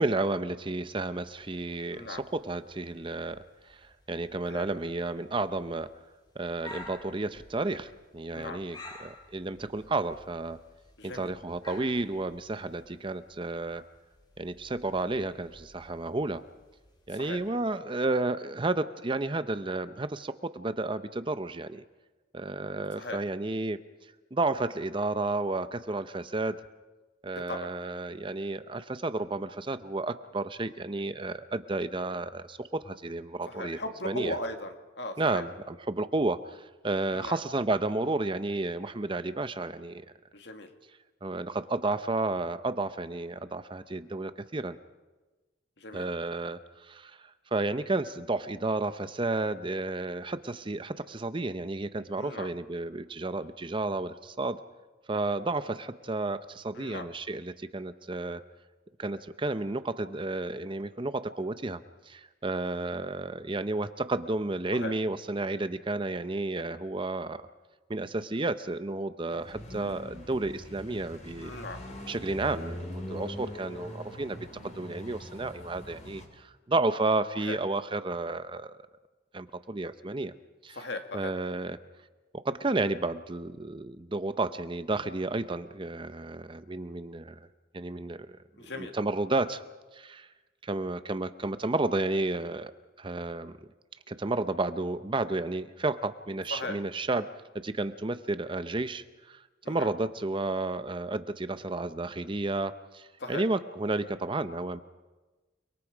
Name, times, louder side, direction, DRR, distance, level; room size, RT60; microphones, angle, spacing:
voice 1, 0.0-5.9 6.4-10.6 11.0-13.8 14.4-16.4 17.1-21.8 22.3-23.8 24.3-26.6 27.2-33.8 34.0-34.4 35.2-40.0 41.2-44.8 45.9-54.6 55.1-58.4 59.0-67.4 67.9-71.5 72.1-78.7 79.3-80.3 80.6-80.8 81.1-81.8 82.3-87.4 87.7-88.3 88.6-89.6 89.9-90.3 90.6-93.6 94.1-97.3 97.5-104.8, right 2 dB, 25° right, 12 dB, 0.6 m, -32 dB
sound 1, 1.2-17.8, left 2 dB, 20° left, 2.7 m, -53 dB
voice 2, 1.9-2.2 4.4-4.6 8.3-8.6 11.0-11.3 17.1-17.4 23.0-23.2 27.3-27.7 33.5-35.4 37.1-37.4 40.3-40.7 45.8-46.1 52.2-52.5 56.7-57.1 64.7-64.9 71.4-71.8 77.4-77.6 80.7-81.3 88.6-88.9 96.5-96.8 99.6-99.9 103.2-103.4, left 2 dB, 60° left, 5 dB, 2.2 m, -38 dB
sound 2, 69.3-76.3, left 1 dB, 35° left, 3.6 m, -42 dB
29.5 x 22.0 x 5.0 m, 1.2 s
head